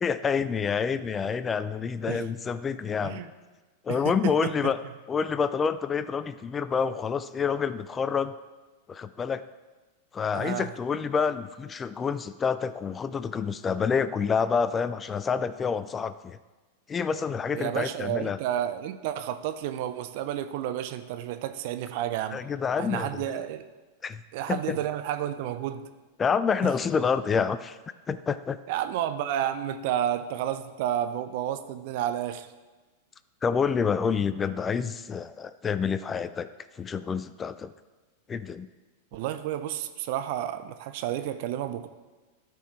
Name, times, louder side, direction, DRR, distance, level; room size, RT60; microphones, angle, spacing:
voice 1, 0.0-3.2 3.8-4.8 5.1-8.3 8.9-9.4 10.1-16.4 16.9-18.4 22.3-23.1 24.0-24.2 24.5-24.8 26.2-27.8 28.1-28.6 33.4-36.5 36.8-37.7 38.3-38.7, left 6 dB, 20° left, 14 dB, 0.3 m, -28 dB
voice 2, 3.9-4.7 10.3-10.7 17.5-22.4 22.8-23.6 24.3-25.8 26.6-26.7 28.7-32.5 39.1-41.9, right 11 dB, 55° right, 10 dB, 0.5 m, -31 dB
13.0 x 4.6 x 3.2 m, 1.3 s
hypercardioid pair, 95°, 0 cm